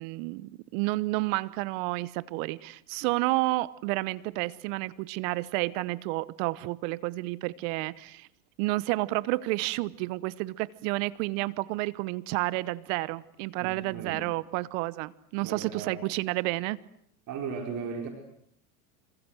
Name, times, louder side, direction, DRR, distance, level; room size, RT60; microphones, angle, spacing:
voice 1, 0.0-8.3 8.6-16.8, right 21 dB, 60° right, 1.1 m, -30 dB
voice 2, 13.6-14.2 15.4-16.0 17.3-18.1, right 6 dB, 45° right, 4.9 m, -36 dB
26.5 x 26.0 x 8.0 m
hypercardioid pair, 105°, 45 cm